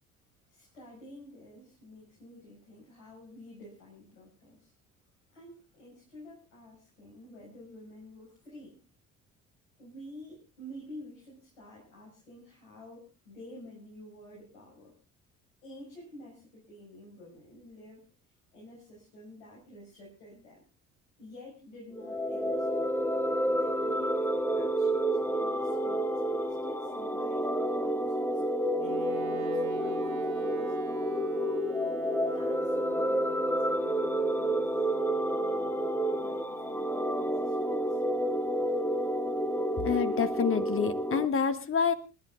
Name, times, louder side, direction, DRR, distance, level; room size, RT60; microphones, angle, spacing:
voice 1, 0.5-4.7 5.3-9.0 9.8-14.9 15.6-18.1 18.5-20.6 21.2-22.8 23.4-31.1 32.3-34.9 35.3-35.8 36.2-38.0, left 1 dB, 70° left, -4 dB, 6.4 m, -50 dB
sound 1, 21.9-41.3, equal, 5° left, 1.0 m, -30 dB
Wind instrument woodwind instrument, 28.7-38.9, right 11 dB, 75° right, 1.6 m, -50 dB
voice 2, 39.8-41.9, left 6 dB, 30° left, 11 dB, 1.6 m, -27 dB
29.0 x 11.5 x 2.5 m, 0.31 s
figure-of-eight pair, 55°, 41 cm